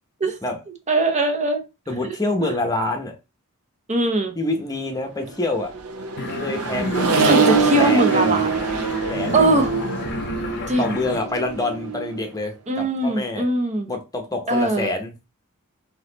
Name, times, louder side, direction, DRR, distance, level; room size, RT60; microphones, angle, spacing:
voice 1, 0.9-1.6 2.0-2.2 2.4-2.6 3.9-4.3 7.2-8.5 9.3-9.7 10.7-11.0 12.7-13.9 14.5-14.9, right 2 dB, 30° right, 0.8 m, -21 dB
voice 2, 1.9-3.1 4.4-5.7 6.3-7.4 7.8-8.4 9.1-9.6 10.8-13.5 13.9-15.1, left 2 dB, 15° left, 0.9 m, -26 dB
Accelerating revving vroom, 5.5-12.2, right 5 dB, 80° right, 0.9 m, -23 dB
sound 1, 6.2-11.2, left 3 dB, 50° left, 0.7 m, -30 dB
4.0 x 2.8 x 3.9 m
head